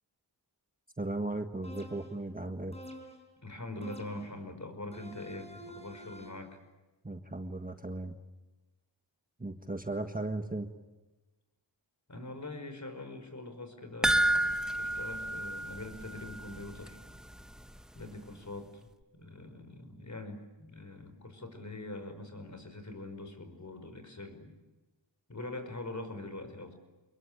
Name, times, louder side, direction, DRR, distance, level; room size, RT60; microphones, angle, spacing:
voice 1, 1.0-2.7 7.0-8.1 9.4-10.7, right 2 dB, 20° right, 6 dB, 1.6 m, -36 dB
sound 1, 1.6-2.3 2.7-3.4 3.8-4.5 4.9-6.5, right 1 dB, 15° left, 4.6 m, -49 dB
voice 2, 3.4-6.6 12.1-17.0 18.0-24.6 25.3-26.7, left 2 dB, 40° left, 9 dB, 5.3 m, -43 dB
sound 2, 14.0-16.6 16.9-17.0 17.4-17.5, right 1 dB, ahead, 0.9 m, -30 dB
28.0 x 22.0 x 8.8 m, 1.1 s
wide cardioid pair, 75°, 45 cm